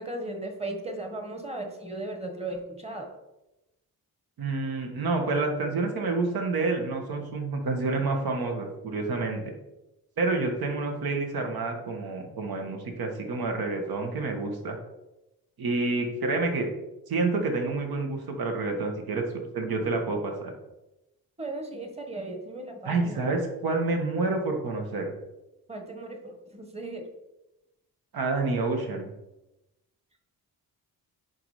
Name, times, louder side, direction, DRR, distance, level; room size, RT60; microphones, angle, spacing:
voice 1, 0.0-3.1 21.4-23.3 25.7-27.1, right 2 dB, 15° right, 4 dB, 1.4 m, -36 dB
voice 2, 4.4-9.4 10.2-14.8 15.6-16.7 17.1-20.5 22.8-25.1 28.1-29.1, right 3 dB, 75° right, 3 dB, 1.8 m, -28 dB
9.9 x 4.8 x 5.0 m, 0.96 s
wide cardioid pair, 150°, 37 cm